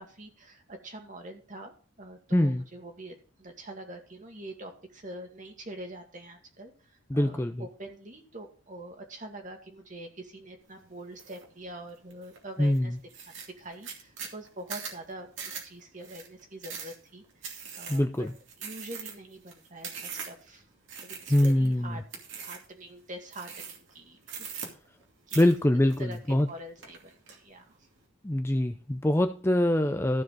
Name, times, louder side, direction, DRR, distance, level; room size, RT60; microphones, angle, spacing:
voice 1, 0.0-13.0 13.2-18.3 18.6-20.6 21.0-22.0 22.4-24.7 25.3-25.5 26.0-27.9, right 1 dB, 40° right, 3 dB, 2.2 m, -45 dB
voice 2, 2.3-2.6 7.1-7.7 12.6-13.0 17.9-18.3 21.3-22.0 25.4-26.5 28.2-30.2, left 1 dB, 10° left, 7 dB, 0.5 m, -24 dB
sound 1, 11.2-11.4 11.9-12.4 12.7-12.8 13.1-20.5 20.9-21.7 22.1-22.7 23.3-23.9 24.2-25.0 25.3-26.5 26.8-27.4, right 6 dB, 65° right, 2.6 m, -41 dB
14.5 x 4.9 x 6.2 m, 0.39 s
head